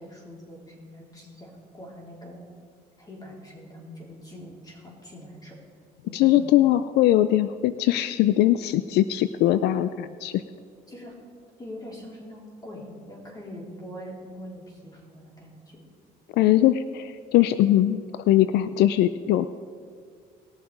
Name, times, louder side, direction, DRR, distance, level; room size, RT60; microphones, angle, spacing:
voice 1, 0.0-2.4 3.0-5.5 6.0-6.5 10.9-11.1 11.6-15.8, equal, 20° left, -3 dB, 4.0 m, -43 dB
voice 2, 6.1-10.4 16.4-19.5, left 13 dB, 80° left, 13 dB, 0.4 m, -21 dB
19.5 x 7.0 x 5.0 m, 2.1 s
cardioid pair, 110°, 17 cm